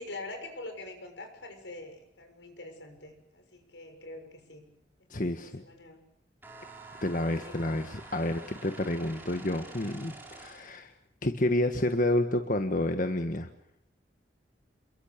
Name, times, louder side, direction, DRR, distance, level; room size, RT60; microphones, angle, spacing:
voice 1, 0.0-4.6 5.3-6.0 7.1-7.5, left 2 dB, 85° left, 6 dB, 6.6 m, -44 dB
voice 2, 5.1-5.6 7.0-10.9 11.2-13.5, left 1 dB, 50° left, 6 dB, 1.5 m, -29 dB
sound 1, 6.4-10.8, right 3 dB, 10° right, 5.0 m, -48 dB
28.5 x 22.5 x 6.8 m, 0.72 s
head